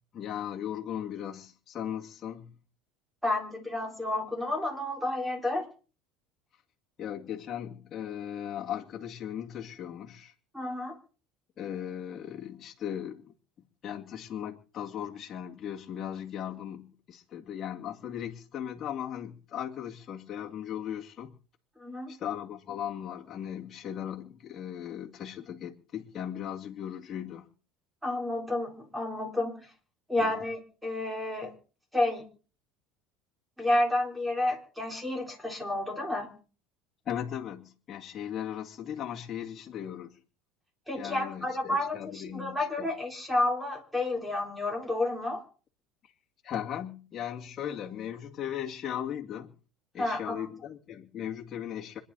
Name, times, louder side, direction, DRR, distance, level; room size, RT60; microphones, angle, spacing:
voice 1, 0.1-2.5 7.0-10.3 11.6-13.3 13.8-21.3 22.1-27.5 30.2-30.3 37.0-40.1 41.0-42.9 46.0-46.1 46.4-49.5 49.9-52.0, left 9 dB, 30° left, 2.4 m, -37 dB
voice 2, 3.2-5.6 10.5-10.9 21.8-22.1 28.0-29.7 30.1-31.5 31.9-32.3 33.6-36.4 40.9-45.4 50.0-50.5, left 2 dB, 5° right, 3.9 m, -30 dB
26.0 x 10.5 x 4.1 m
cardioid pair, 140°, 0 cm